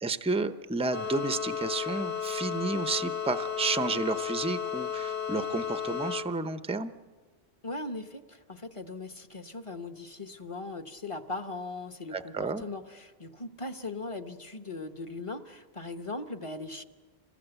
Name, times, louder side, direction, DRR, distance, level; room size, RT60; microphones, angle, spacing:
voice 1, 0.0-6.9 12.1-12.6, right 3 dB, 5° right, 11 dB, 0.6 m, -31 dB
sound 1, 0.9-6.2, left 7 dB, 80° left, 2.9 m, -33 dB
voice 2, 7.6-16.8, left 2 dB, 30° left, 8 dB, 1.0 m, -39 dB
27.0 x 20.0 x 8.0 m, 1.4 s
omnidirectional pair, 1.1 m